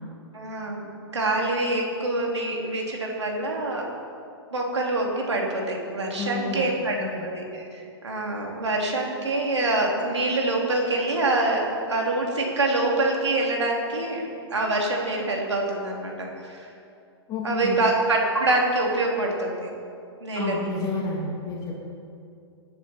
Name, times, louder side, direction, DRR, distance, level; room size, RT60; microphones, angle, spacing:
voice 1, 0.3-3.8 4.5-14.2 14.5-16.6 17.4-19.7 20.2-20.7, right 2 dB, 90° right, -1 dB, 3.1 m, -25 dB
voice 2, 6.2-6.7 7.0-7.3 17.3-17.8 20.3-21.9, left 3 dB, 25° left, -3 dB, 2.8 m, -30 dB
18.0 x 10.0 x 4.5 m, 2.5 s
hypercardioid pair, 120°, 14 cm